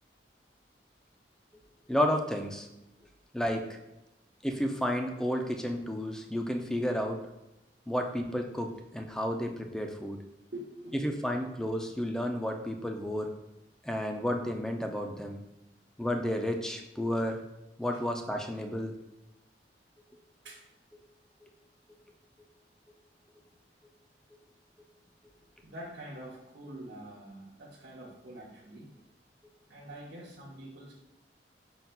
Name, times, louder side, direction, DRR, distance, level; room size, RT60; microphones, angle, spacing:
voice 1, 1.9-2.7 3.3-3.7 4.4-7.2 7.9-10.2 11.0-13.3 13.8-15.4 16.0-17.4 17.8-19.0 21.4-21.5, equal, 5° left, 3 dB, 0.3 m, -31 dB
voice 2, 10.5-11.0 20.4-20.6 25.6-28.9 29.7-30.9, right 1 dB, 80° right, -6 dB, 0.8 m, -45 dB
5.6 x 3.9 x 2.2 m, 0.93 s
head